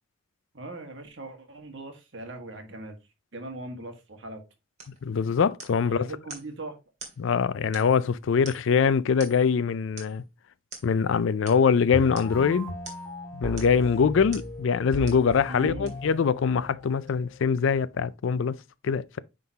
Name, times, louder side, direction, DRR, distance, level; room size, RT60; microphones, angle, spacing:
voice 1, 0.5-2.9 3.3-4.4 5.8-6.8 15.5-15.9, right 2 dB, 60° right, 1.6 m, -40 dB
sound 1, 4.8-5.0 5.6-5.9 6.3-6.5 7.0-7.2 7.7-8.1 8.4-8.8 9.2-9.5 10.0-10.2 10.7-10.9 11.5-11.6 12.1-12.3 12.8-13.1 13.6-13.8 14.3-14.5 15.1-15.3 15.9-16.0, right 4 dB, 35° right, 1.9 m, -44 dB
voice 2, 5.0-6.1 7.2-10.2 10.8-12.8 13.3-18.6 18.8-19.2, left 6 dB, 65° left, 0.4 m, -23 dB
sound 2, 11.9-17.9, left 1 dB, 15° left, 2.3 m, -37 dB
9.2 x 3.8 x 2.8 m
head